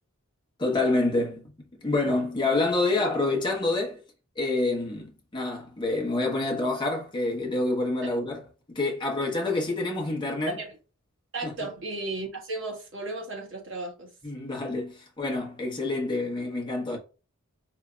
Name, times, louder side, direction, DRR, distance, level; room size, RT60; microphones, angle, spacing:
voice 1, 0.6-1.5 1.8-4.0 4.4-8.4 8.7-10.6 11.4-11.5 14.2-17.0, left 2 dB, 20° left, 1.0 m, -27 dB
voice 2, 11.3-14.1, right 2 dB, 55° right, 1.6 m, -35 dB
4.9 x 2.7 x 2.2 m
head